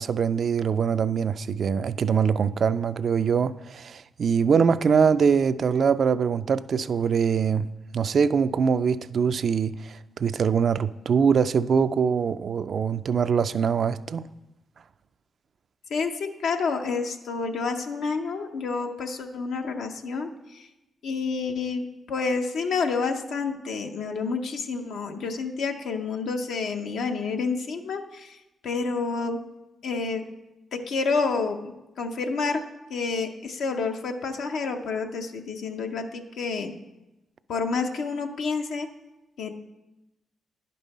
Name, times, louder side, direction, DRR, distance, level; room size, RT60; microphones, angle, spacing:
voice 1, 0.0-7.7 7.9-14.2, right 6 dB, 65° right, 0.3 m, -23 dB
voice 2, 15.9-20.7 21.0-28.4 28.6-29.4 29.8-30.2 30.7-32.6 32.9-36.7 37.5-38.9 39.4-39.5, left 4 dB, 80° left, 0.6 m, -29 dB
10.5 x 5.4 x 4.1 m
cardioid pair, 60°, 0 cm